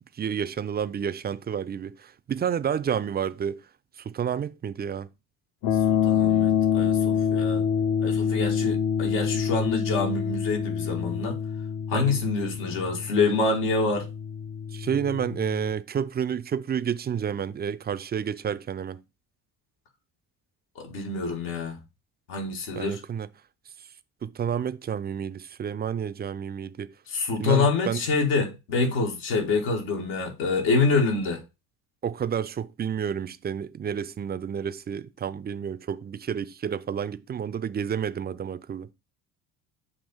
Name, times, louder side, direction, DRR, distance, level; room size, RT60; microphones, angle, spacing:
voice 1, 0.1-3.6 4.0-5.1 11.9-12.2 14.7-19.0 22.7-23.3 24.2-26.9 27.4-28.0 32.0-38.9, right 8 dB, 20° right, 0.4 m, -30 dB
sound 1, 5.6-15.7, left 8 dB, 45° left, 0.7 m, -26 dB
voice 2, 5.9-7.6 8.0-11.4 11.9-14.1 20.7-21.8 22.3-23.0 27.1-31.4, left 4 dB, 75° left, 1.8 m, -26 dB
7.2 x 2.9 x 5.3 m
hypercardioid pair, 55°, 49 cm